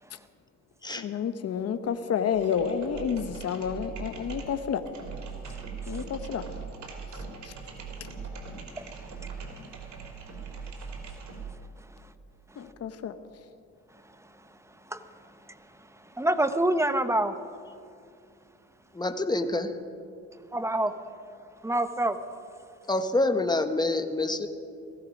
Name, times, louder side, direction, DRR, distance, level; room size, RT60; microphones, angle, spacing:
voice 1, 1.0-4.8 5.9-6.4 12.6-13.1, left 7 dB, 55° left, 9 dB, 1.0 m, -29 dB
sound 1, 2.3-11.6, right 5 dB, 70° right, 2.9 m, -40 dB
voice 2, 16.2-17.3 20.5-21.0 21.6-22.2, right 1 dB, 10° right, 10 dB, 0.9 m, -25 dB
voice 3, 18.9-19.7 22.9-24.5, left 2 dB, 15° left, 8 dB, 1.1 m, -26 dB
17.5 x 15.0 x 5.2 m, 2.4 s
cardioid pair, 90°, 30 cm